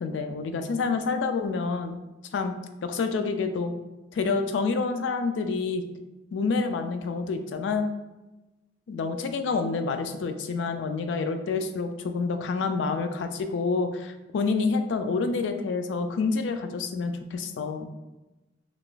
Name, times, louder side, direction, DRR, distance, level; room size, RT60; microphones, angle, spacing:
voice 1, 0.0-2.0 2.3-2.5 2.8-3.7 4.1-5.8 6.3-7.9 8.9-17.9, left 4 dB, 75° left, 7 dB, 0.3 m, -28 dB
3.7 x 2.4 x 2.4 m, 1.1 s
head